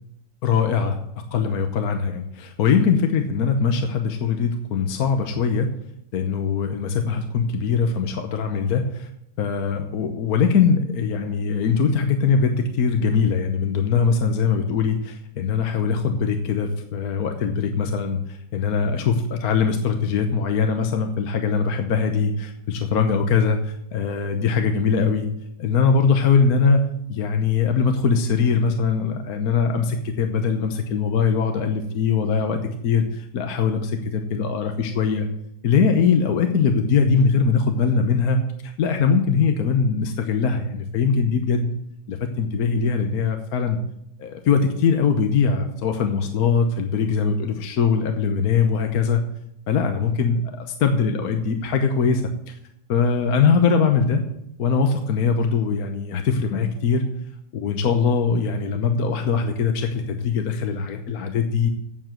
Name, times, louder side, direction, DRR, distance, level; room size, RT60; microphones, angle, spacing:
voice 1, 0.4-1.0 1.3-5.7 6.1-9.1 9.4-25.3 25.6-35.3 35.6-41.7 42.1-43.8 44.2-49.2 49.7-52.6 52.9-54.2 54.6-57.1 57.5-61.7, left 5 dB, 60° left, 5 dB, 1.3 m, -21 dB
8.9 x 7.2 x 7.6 m, 0.78 s
omnidirectional pair, 1.9 m